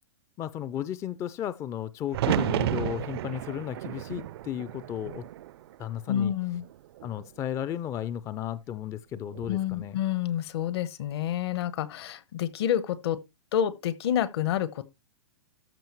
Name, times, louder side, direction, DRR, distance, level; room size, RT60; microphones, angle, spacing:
voice 1, 0.4-5.2 5.8-6.3 7.0-10.0, left 10 dB, 20° left, 0.4 m, -34 dB
sound 1, 2.1-6.2 6.5-7.3 9.2-9.6, right 13 dB, 55° right, 0.5 m, -32 dB
voice 2, 6.1-6.6 9.5-13.2 13.5-14.8, left 10 dB, 60° left, 1.3 m, -28 dB
13.5 x 5.1 x 4.5 m
hypercardioid pair, 140°, 15 cm